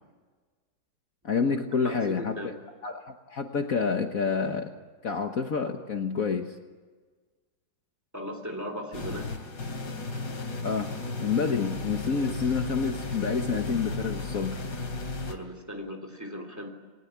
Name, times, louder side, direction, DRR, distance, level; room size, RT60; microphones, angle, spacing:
voice 1, 1.2-2.5 2.8-4.7 5.0-6.6 10.6-10.9 11.2-14.6, left 5 dB, 50° left, 4 dB, 1.7 m, -28 dB
voice 2, 1.8-2.5 8.1-9.3 15.3-16.7, equal, 10° right, 4 dB, 3.2 m, -37 dB
sound 1, 8.9-15.4, left 2 dB, 80° left, 3.5 m, -34 dB
29.0 x 20.5 x 8.7 m, 1.4 s
omnidirectional pair, 1.9 m